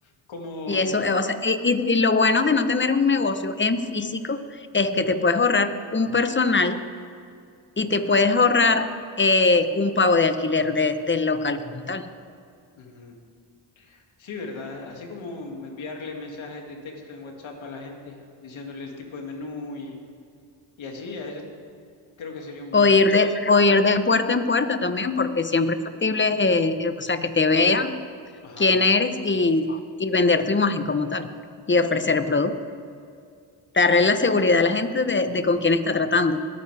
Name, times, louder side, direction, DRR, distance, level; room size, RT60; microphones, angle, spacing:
voice 1, 0.0-0.9 12.8-13.2 13.8-20.0 20.8-21.5 22.2-23.0 28.4-28.7, left 3 dB, 70° left, 1 dB, 2.6 m, -37 dB
voice 2, 0.7-6.8 7.8-8.9 9.2-12.1 22.7-28.0 28.6-31.3 31.7-32.6 33.7-36.4, left 3 dB, 25° left, 10 dB, 1.1 m, -21 dB
21.5 x 9.7 x 3.5 m, 2.3 s
supercardioid pair, 55°, 49 cm